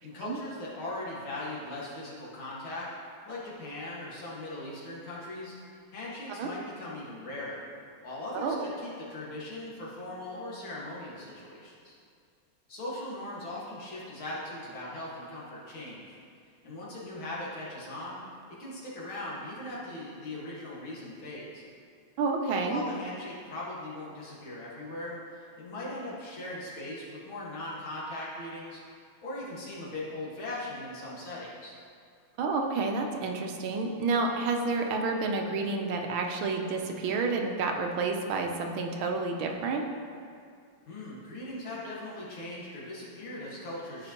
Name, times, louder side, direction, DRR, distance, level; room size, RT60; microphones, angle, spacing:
voice 1, 0.0-2.9 3.3-5.6 5.9-7.7 8.0-11.9 12.7-16.2 16.6-18.2 18.5-21.6 22.5-28.8 29.2-31.8 40.9-44.1, left 1 dB, 80° left, -6 dB, 2.6 m, -39 dB
voice 2, 8.3-8.7 22.2-22.8 32.4-39.8, right 3 dB, 80° right, 3 dB, 1.5 m, -29 dB
14.0 x 5.0 x 2.9 m, 2.3 s
omnidirectional pair, 2.2 m